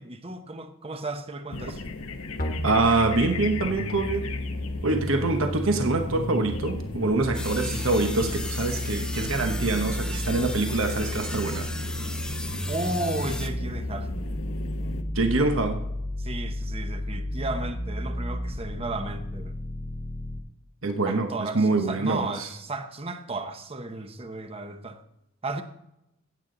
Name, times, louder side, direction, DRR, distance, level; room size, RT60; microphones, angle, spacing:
voice 1, 0.0-1.8 12.7-14.1 16.2-19.6 21.0-25.0 25.4-25.6, right 2 dB, 25° right, 0.9 m, -34 dB
sound 1, 1.5-15.0, left 3 dB, 75° left, 1.0 m, -38 dB
sound 2, 2.4-20.4, left 1 dB, 40° left, 1.3 m, -33 dB
voice 2, 2.6-4.3 4.8-11.7 15.1-15.8 20.8-22.5, right 3 dB, 65° right, 1.1 m, -25 dB
sound 3, 7.3-13.5, left 2 dB, 5° left, 0.6 m, -37 dB
15.5 x 8.7 x 3.9 m
head